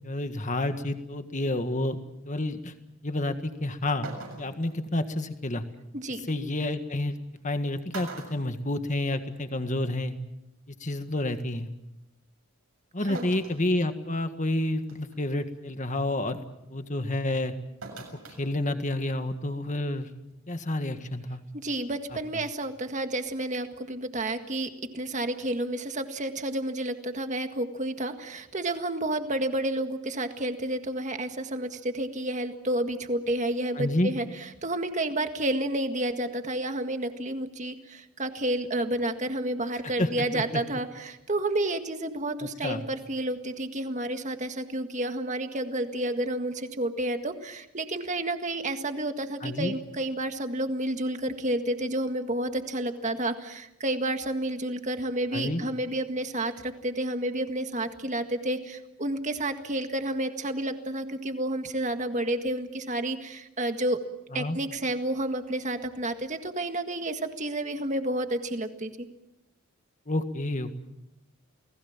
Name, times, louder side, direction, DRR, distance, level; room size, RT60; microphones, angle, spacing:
voice 1, 0.0-2.0 2.2-2.7 3.0-4.1 4.4-5.6 6.3-7.2 7.4-10.1 10.7-11.7 12.9-16.4 16.7-17.5 18.4-20.1 20.5-21.4 33.7-34.1 40.0-40.6 42.4-42.8 49.4-49.7 55.3-55.6 64.3-64.6 70.1-70.7, left 1 dB, 35° left, 8 dB, 1.7 m, -29 dB
sound 1, 3.5-3.6 4.0-4.7 6.3-6.4 7.4-7.5 7.9-9.3 9.6-9.7 11.0-11.1 13.1-13.6 14.2-14.3 14.9-15.2 17.8-18.4 18.7-18.8, right 3 dB, 75° right, 7.0 m, -42 dB
voice 2, 5.9-6.3 13.1-13.3 21.5-34.3 34.6-64.0 64.3-69.1, right 1 dB, 35° right, 7 dB, 1.8 m, -30 dB
29.5 x 19.5 x 7.3 m, 0.89 s
head